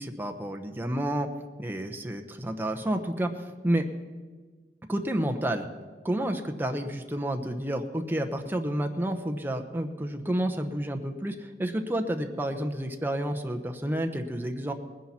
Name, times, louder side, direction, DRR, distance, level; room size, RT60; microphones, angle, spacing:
voice 1, 0.0-1.3 1.6-3.9 4.9-5.7 6.0-14.7, right 1 dB, 10° right, 5 dB, 0.8 m, -30 dB
20.0 x 10.0 x 4.3 m, 1.4 s
head